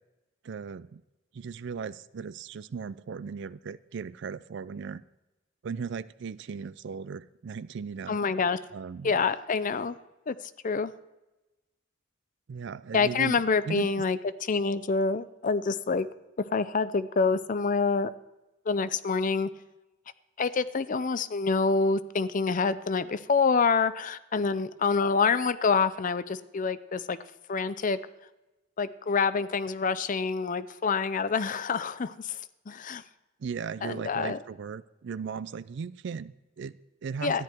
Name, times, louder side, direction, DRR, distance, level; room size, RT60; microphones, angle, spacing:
voice 1, 0.4-1.0 1.3-5.0 5.6-8.2 8.7-9.2 12.5-14.0 33.4-37.4, right 6 dB, 60° right, 18 dB, 0.4 m, -37 dB
voice 2, 8.1-8.6 9.0-10.0 10.3-10.4 10.6-10.9 12.9-14.2 14.5-16.1 16.5-18.1 18.7-19.5 20.4-27.2 27.5-28.0 28.8-32.4 32.7-33.0 33.8-34.4 37.2-37.4, left 4 dB, 40° left, 14 dB, 0.5 m, -26 dB
13.5 x 10.5 x 4.5 m, 1.0 s
head